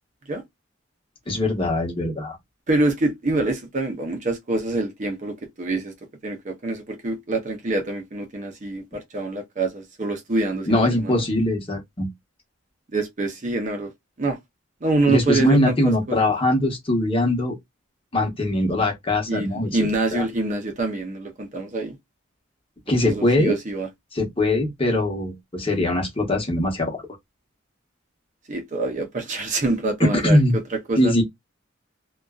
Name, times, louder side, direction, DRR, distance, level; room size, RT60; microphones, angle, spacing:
voice 1, 1.3-2.4 10.7-12.1 15.1-17.5 18.1-20.2 22.9-23.5 24.1-27.0 30.0-30.5 31.0-31.2, left 1 dB, 25° left, 1.0 m, -21 dB
voice 2, 2.7-5.9 6.2-11.2 12.9-13.9 14.2-14.4 14.8-15.8 16.1-16.3 19.3-22.0 22.9-23.9 28.5-31.1, right 2 dB, 40° right, 0.6 m, -26 dB
2.5 x 2.2 x 2.3 m
head